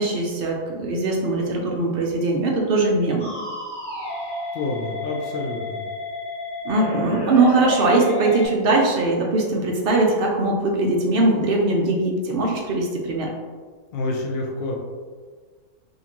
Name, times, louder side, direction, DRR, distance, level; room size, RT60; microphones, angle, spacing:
voice 1, 0.0-3.3 6.6-13.3, right 2 dB, 75° right, -1 dB, 0.5 m, -21 dB
sound 1, 3.2-8.5, left 1 dB, 30° left, 0.5 m, -30 dB
voice 2, 4.5-5.8 13.9-14.8, left 2 dB, 75° left, -1 dB, 0.5 m, -28 dB
3.8 x 2.5 x 2.9 m, 1.5 s
omnidirectional pair, 1.6 m